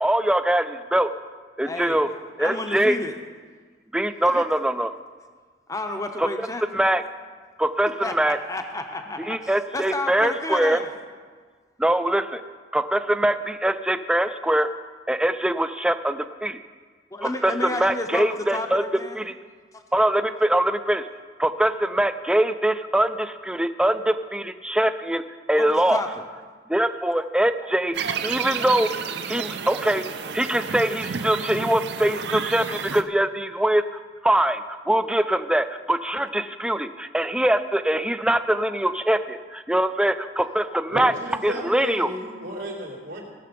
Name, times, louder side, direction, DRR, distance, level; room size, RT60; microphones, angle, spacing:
voice 1, 0.0-1.1 1.6-2.1 2.4-3.0 3.9-4.9 6.2-6.3 6.7-7.0 7.6-8.4 9.3-10.8 11.8-12.4 12.7-14.7 15.1-16.6 17.2-18.8 19.1-19.3 19.9-21.1 21.4-25.2 25.5-26.0 26.7-27.9 28.2-28.9 29.3-30.0 30.3-33.8 34.2-41.1 41.4-42.1, right 1 dB, 5° right, 10 dB, 0.3 m, -23 dB
voice 2, 1.6-2.0 2.4-3.2 4.2-4.4 5.7-6.6 8.0-10.9 17.1-19.2 19.7-19.8 25.5-26.2, left 2 dB, 20° left, 5 dB, 0.7 m, -31 dB
sound 1, 27.9-33.0, right 6 dB, 60° right, 0.5 m, -31 dB
voice 3, 40.9-43.2, equal, 90° right, -4 dB, 3.1 m, -33 dB
18.0 x 6.7 x 5.2 m, 1.5 s
head